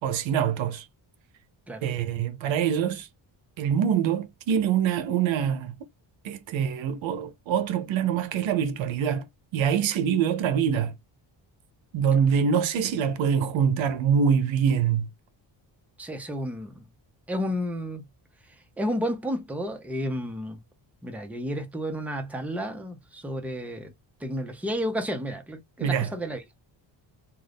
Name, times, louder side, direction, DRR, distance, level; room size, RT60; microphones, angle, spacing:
voice 1, 0.0-0.8 1.8-3.1 3.6-5.7 6.2-9.3 9.5-11.0 11.9-15.1 25.8-26.1, right 7 dB, 80° right, 0.7 m, -24 dB
voice 2, 16.0-16.9 17.3-18.1 18.8-20.6 21.0-23.9 24.2-26.4, equal, 5° right, 0.6 m, -31 dB
2.6 x 2.4 x 3.4 m
cardioid pair, 110°, 46 cm